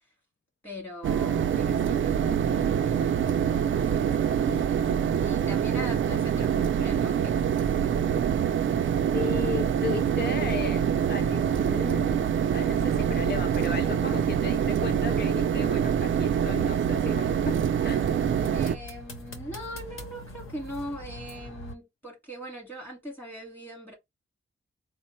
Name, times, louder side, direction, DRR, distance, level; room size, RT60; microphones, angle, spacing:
voice 1, 0.6-4.7 5.1-7.6 18.5-23.9, equal, 10° left, 2.2 m, -41 dB
sound 1, 1.0-18.8, right 8 dB, 65° right, 0.4 m, -25 dB
voice 2, 9.1-18.1, left 6 dB, 50° left, 0.4 m, -36 dB
sound 2, 17.9-21.7, left 1 dB, 80° left, 0.9 m, -43 dB
4.1 x 2.0 x 4.3 m
wide cardioid pair, 155°, 21 cm